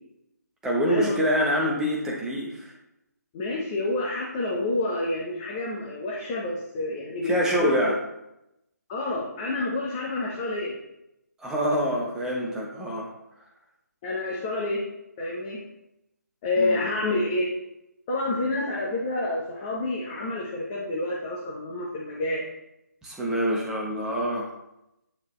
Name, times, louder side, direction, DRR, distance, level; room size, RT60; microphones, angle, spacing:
voice 1, 0.6-2.7 7.2-8.0 11.4-13.1 16.6-16.8 23.0-24.5, equal, 5° right, -3 dB, 0.9 m, -25 dB
voice 2, 3.3-7.3 7.6-7.7 8.9-10.8 14.0-14.8 15.2-15.6 16.4-17.5 18.1-22.4, left 2 dB, 25° left, -4 dB, 1.0 m, -28 dB
9.0 x 3.9 x 3.2 m, 0.87 s
figure-of-eight pair, 150°, 10 cm